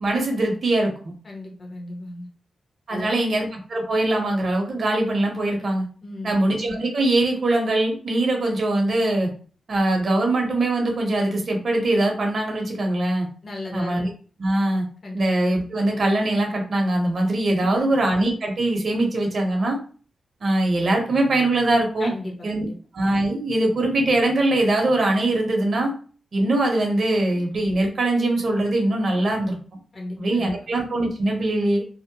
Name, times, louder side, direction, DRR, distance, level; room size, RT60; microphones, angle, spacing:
voice 1, 0.0-0.9 2.9-5.9 6.2-9.3 9.7-13.3 13.7-14.1 14.4-14.8 15.1-19.8 20.4-22.1 22.4-22.7 22.9-25.9 26.3-29.6 30.2-31.8, right 2 dB, 50° right, 2 dB, 0.7 m, -22 dB
voice 2, 1.2-2.3 2.9-3.3 6.0-6.3 13.4-14.0 15.0-15.2 17.5-17.9 22.0-22.8 29.9-30.5, left 1 dB, 40° left, 0 dB, 0.8 m, -35 dB
2.6 x 2.0 x 2.7 m, 0.41 s
wide cardioid pair, 125°, 0 cm